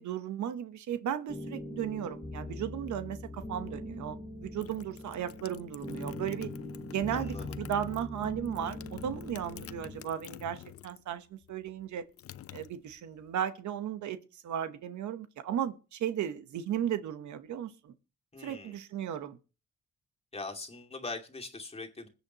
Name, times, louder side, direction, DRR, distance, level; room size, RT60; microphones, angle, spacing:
voice 1, 0.0-6.5 6.9-12.0 12.5-17.9 18.4-19.4, right 9 dB, 70° right, 1.1 m, -35 dB
sound 1, 1.3-10.0, left 1 dB, 5° left, 2.5 m, -42 dB
sound 2, 4.3-11.1 11.4-13.3, left 11 dB, 50° left, 0.6 m, -47 dB
voice 2, 7.1-7.5 18.3-18.8 20.3-22.1, left 3 dB, 20° left, 2.3 m, -41 dB
21.0 x 8.3 x 2.9 m
cardioid pair, 90°, 30 cm